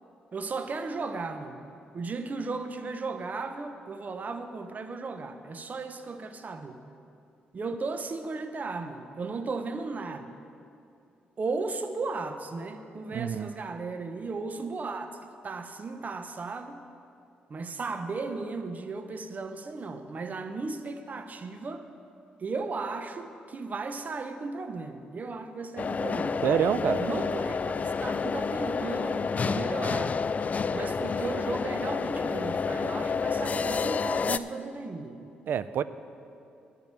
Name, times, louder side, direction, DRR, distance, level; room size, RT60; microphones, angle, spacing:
voice 1, 0.3-1.6 1.9-6.8 7.5-10.3 11.4-15.1 15.4-16.8 17.5-21.8 22.4-26.4 27.0-27.6 28.0-30.2 30.7-35.3, right 3 dB, 45° right, 8 dB, 0.8 m, -35 dB
voice 2, 13.1-13.5 26.4-27.0 35.5-35.8, right 8 dB, 65° right, 15 dB, 0.4 m, -26 dB
sound 1, 25.8-34.4, left 5 dB, 40° left, 0.3 m, -29 dB
10.5 x 5.9 x 8.8 m, 2.6 s
hypercardioid pair, 50°, 4 cm